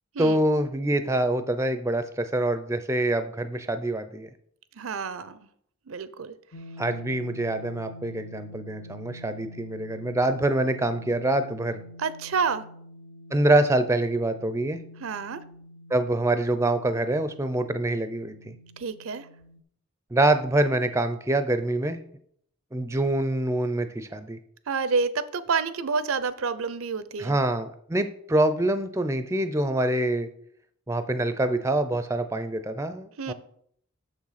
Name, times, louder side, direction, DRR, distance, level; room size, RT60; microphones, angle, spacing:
voice 1, 0.2-4.3 6.8-11.8 13.3-14.8 15.9-18.5 20.1-22.0 22.7-24.4 27.2-30.3 30.9-33.3, right 1 dB, 15° right, 10 dB, 0.4 m, -25 dB
voice 2, 4.8-5.4 5.9-6.3 12.0-12.7 15.0-15.4 18.8-19.3 24.7-27.3 33.2-33.3, right 5 dB, 80° right, 15 dB, 0.6 m, -28 dB
sound 1, 6.5-19.6, left 1 dB, 65° left, 0.6 m, -46 dB
6.7 x 6.1 x 5.7 m, 0.67 s
head